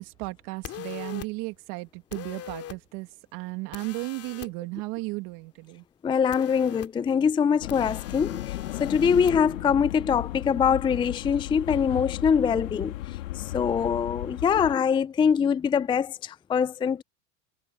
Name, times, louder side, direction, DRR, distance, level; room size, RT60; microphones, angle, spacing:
voice 1, 0.0-5.8, right 24 dB, 60° right, 2.5 m, -35 dB
sound 1, 0.6-1.3 2.1-2.8 3.7-4.5 6.3-6.9 7.7-9.3, left 11 dB, 40° left, 2.8 m, -41 dB
voice 2, 6.0-8.5 8.8-12.9 13.5-17.0, left 7 dB, 15° left, 0.4 m, -23 dB
sound 2, 7.6-14.8, left 16 dB, 80° left, 2.7 m, -35 dB
hypercardioid pair, 105°, 38 cm